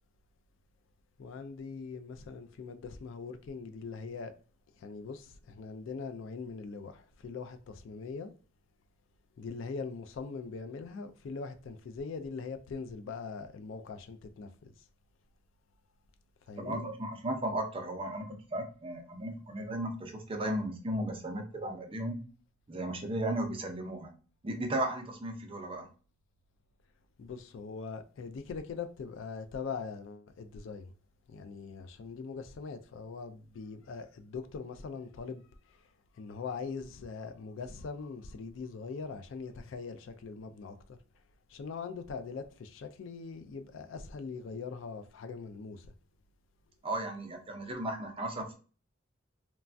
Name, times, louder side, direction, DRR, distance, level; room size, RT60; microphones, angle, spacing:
voice 1, 1.2-4.3 4.8-8.3 9.4-14.7 16.5-16.8 27.2-30.9 31.3-41.0 41.5-45.9, left 5 dB, 70° left, 0.3 m, -42 dB
voice 2, 16.6-22.2 22.7-24.1 24.4-25.9 46.8-48.6, right 1 dB, 25° right, 0.5 m, -35 dB
3.1 x 2.2 x 2.5 m
head